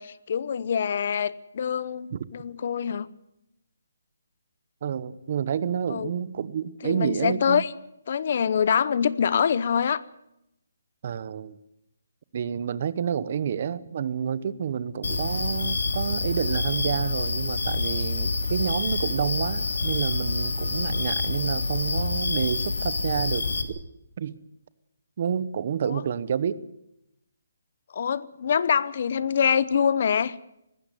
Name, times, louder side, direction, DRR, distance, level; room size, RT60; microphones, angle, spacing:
voice 1, 0.0-3.1 5.9-6.1 6.8-7.7 8.1-10.0 25.8-26.0 27.9-30.4, left 7 dB, 40° left, 18 dB, 0.8 m, -25 dB
voice 2, 4.8-7.6 11.0-11.6 12.3-23.8 24.2-24.4 25.2-26.6, right 8 dB, 35° right, 17 dB, 1.0 m, -29 dB
sound 1, 15.0-23.6, left 3 dB, 85° left, 3.4 m, -27 dB
19.5 x 16.0 x 9.5 m, 0.83 s
hypercardioid pair, 175°, 0 cm